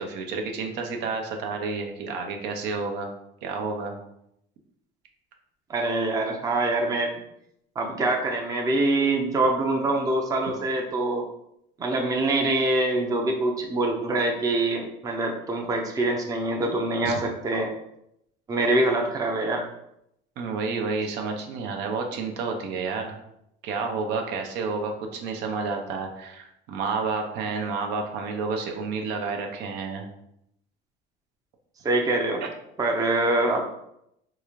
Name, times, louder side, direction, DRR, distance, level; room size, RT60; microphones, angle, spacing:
voice 1, 0.0-3.1 3.4-3.9 17.0-17.2 20.4-23.2 23.6-30.1, right 4 dB, 70° right, 3 dB, 0.6 m, -30 dB
voice 2, 5.7-7.1 7.8-11.2 11.8-17.7 18.5-19.7 31.8-32.4 32.8-33.6, right 2 dB, 20° right, 1 dB, 0.5 m, -24 dB
3.7 x 2.5 x 3.1 m, 0.78 s
cardioid pair, 130°, 18 cm